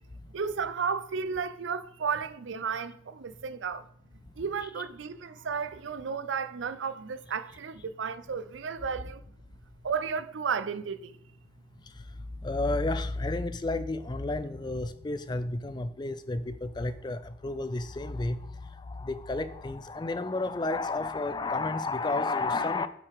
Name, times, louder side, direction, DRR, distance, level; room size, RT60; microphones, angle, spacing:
voice 1, 0.3-3.9 4.4-9.2 9.8-11.2, right 6 dB, 80° right, 0.5 m, -33 dB
voice 2, 12.4-22.9, left 2 dB, 25° left, 0.4 m, -31 dB
9.4 x 5.6 x 3.5 m
head